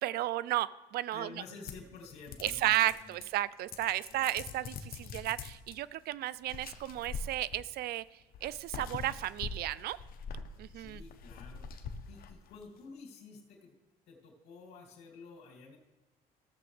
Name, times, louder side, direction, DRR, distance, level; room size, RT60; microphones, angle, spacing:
voice 1, 0.0-1.3 2.4-8.0 8.4-10.0 10.6-11.0, right 14 dB, 65° right, 18 dB, 0.4 m, -33 dB
voice 2, 1.1-3.2 4.1-4.2 10.7-13.7 14.1-15.8, left 4 dB, 85° left, -1 dB, 2.6 m, -51 dB
sound 1, 1.7-3.4 3.7-5.8 6.4-7.8 8.3-12.6, left 5 dB, 60° left, 0.9 m, -44 dB
16.0 x 7.0 x 3.3 m, 1.1 s
cardioid pair, 110°, 17 cm